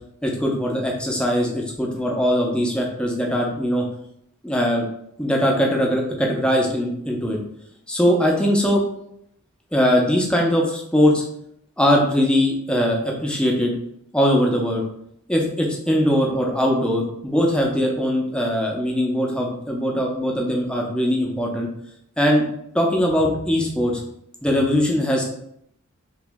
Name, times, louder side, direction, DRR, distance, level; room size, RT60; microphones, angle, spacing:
voice 1, 0.2-3.8 4.4-4.9 5.2-7.4 7.9-8.8 9.7-11.2 11.8-13.7 14.1-14.8 15.3-21.7 22.2-22.4 22.7-24.0 24.4-25.3, equal, 5° left, -1 dB, 0.6 m, -21 dB
3.0 x 2.9 x 3.5 m, 0.73 s
head